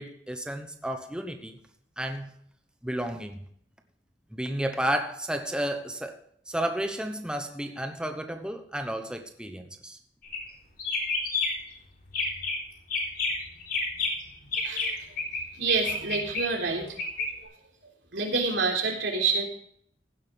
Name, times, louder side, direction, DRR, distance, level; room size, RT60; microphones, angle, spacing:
voice 1, 0.0-1.5 2.0-2.3 2.8-3.4 4.3-6.2 6.5-10.0, right 1 dB, 5° right, 5 dB, 1.0 m, -32 dB
sound 1, 10.2-10.5 10.8-11.7 12.1-12.6 12.9-15.4 15.7-17.3, left 3 dB, 55° left, 4.0 m, -30 dB
voice 2, 14.6-15.0 15.5-17.0 17.4-17.5 18.1-19.5, right 4 dB, 85° right, 0 dB, 3.7 m, -27 dB
16.0 x 11.5 x 3.5 m, 0.66 s
head